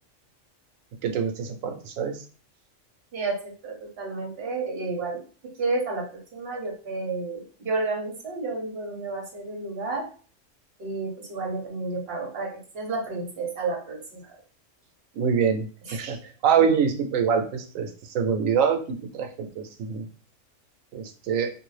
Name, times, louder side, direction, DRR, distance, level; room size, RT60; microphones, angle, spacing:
voice 1, 1.0-2.2 15.2-17.9 18.1-20.1 20.9-21.5, right 7 dB, 85° right, 5 dB, 1.0 m, -25 dB
voice 2, 3.1-5.2 5.6-6.0 6.3-10.0 10.8-14.2 15.9-16.0, right 3 dB, 55° right, 0 dB, 1.1 m, -31 dB
2.6 x 2.6 x 3.2 m, 0.39 s
omnidirectional pair, 1.3 m